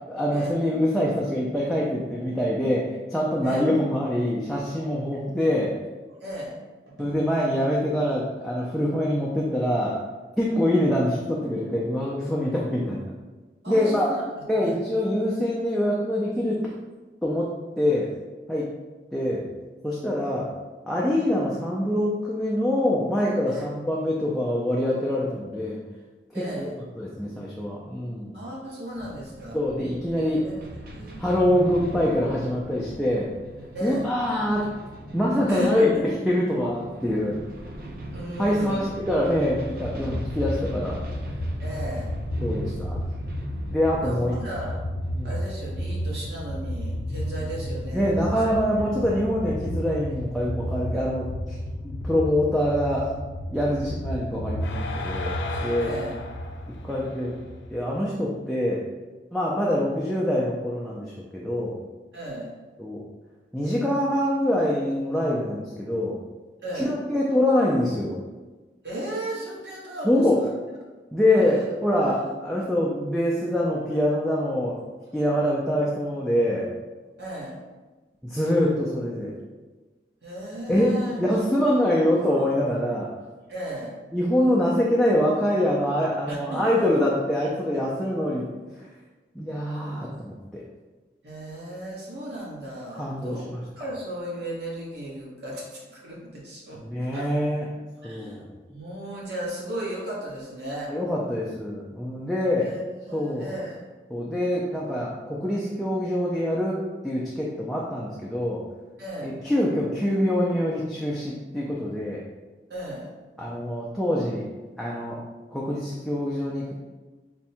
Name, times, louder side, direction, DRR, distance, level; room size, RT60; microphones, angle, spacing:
voice 1, 0.1-5.7 7.0-10.0 10.4-13.0 13.7-14.1 14.5-16.6 17.2-18.1 18.5-18.7 19.1-19.5 19.8-20.5 20.9-25.8 26.3-26.7 27.0-28.4 29.5-30.4 31.2-33.3 33.8-34.7 35.1-35.9 36.3-37.4 38.4-41.0 42.4-43.0 43.7-44.3 45.1-45.3 47.9-51.6 51.8-53.1 53.5-55.9 56.8-57.3 57.7-58.8 59.3-61.8 62.8-63.0 63.5-66.2 66.7-68.2 70.0-70.4 71.1-74.7 75.1-76.7 78.2-79.3 80.7-83.1 84.1-88.4 88.8-88.9 89.3-90.6 93.0-93.6 96.8-97.7 98.0-98.5 100.9-102.7 103.1-103.5 104.1-106.8 107.0-108.6 109.2-112.2 113.4-114.4 114.8-115.2 115.5-116.7, left 1 dB, ahead, -6 dB, 0.3 m, -25 dB
voice 2, 6.2-6.5 6.9-7.1 13.6-14.8 23.5-23.6 26.3-26.7 28.3-29.6 30.4-30.6 30.9-31.2 33.7-34.1 35.5-36.1 38.1-38.9 41.6-42.1 44.0-44.8 45.2-48.4 55.8-56.2 62.1-62.5 66.6-67.0 68.8-70.5 71.4-71.7 72.1-72.3 77.2-77.6 80.2-81.2 83.5-83.9 86.3-86.6 87.4-87.9 91.2-93.5 93.8-96.8 97.1-97.3 98.0-100.9 102.6-102.8 103.1-103.8 109.0-109.3 112.7-113.1, right 1 dB, 70° right, -5 dB, 1.1 m, -35 dB
sound 1, 28.9-46.5, right 1 dB, 55° right, 0.5 m, -40 dB
sound 2, 39.8-58.1, equal, 90° left, 0.5 m, -32 dB
3.5 x 2.2 x 4.2 m, 1.3 s
head